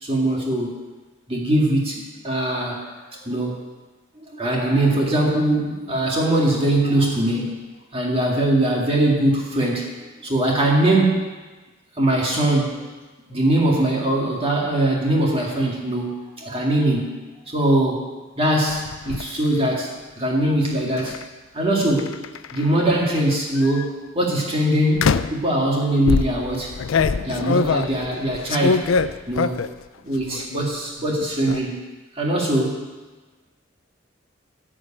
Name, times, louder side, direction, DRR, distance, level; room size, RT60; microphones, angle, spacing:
voice 1, 0.0-0.8 1.3-2.9 3.2-3.6 4.2-7.6 7.9-9.9 10.2-11.2 12.0-12.8 13.3-17.2 17.5-18.0 18.4-21.2 21.5-22.2 22.5-26.7 27.2-28.8 29.3-29.6 30.1-31.8 32.1-32.9, right 1 dB, 30° right, -2 dB, 2.1 m, -21 dB
sound 1, 18.7-19.2 21.0-21.2 22.0-22.8 23.6-23.9 25.0-25.5 26.1-29.8 30.2-30.7 31.0-31.6, left 5 dB, 75° left, 0.4 m, -23 dB
14.5 x 5.0 x 8.6 m, 1.3 s
head